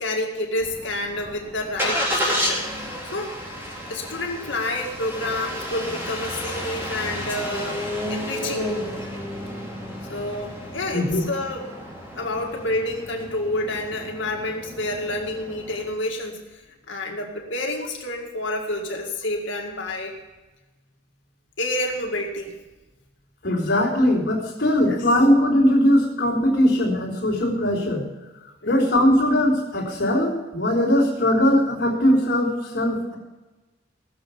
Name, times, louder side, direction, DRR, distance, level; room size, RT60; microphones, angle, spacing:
voice 1, 0.0-2.7 3.0-3.3 3.9-7.8 8.1-8.7 10.1-11.7 12.2-16.6 16.9-20.2 21.6-22.6 24.9-25.0 28.6-28.8, left 1 dB, 75° left, 1 dB, 2.1 m, -29 dB
Engine starting, 0.6-15.9, equal, 10° right, 3.4 m, -31 dB
voice 2, 23.4-28.1 28.7-33.2, left 1 dB, 55° left, -4 dB, 4.1 m, -20 dB
18.5 x 6.9 x 7.1 m, 1.1 s
head